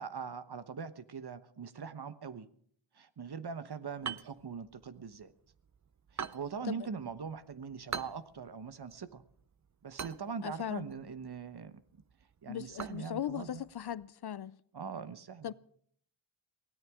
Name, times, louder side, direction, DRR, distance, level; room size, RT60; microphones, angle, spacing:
voice 1, 0.0-2.5 2.9-5.3 6.1-9.2 9.8-11.8 12.4-13.6 14.7-15.5, right 5 dB, 50° right, 1.2 m, -42 dB
sound 1, 4.0-14.1, right 7 dB, 35° right, 0.6 m, -47 dB
voice 2, 10.4-10.9 12.5-14.6 15.4-15.5, left 10 dB, 55° left, 0.6 m, -38 dB
23.5 x 17.0 x 3.7 m
wide cardioid pair, 85°, 49 cm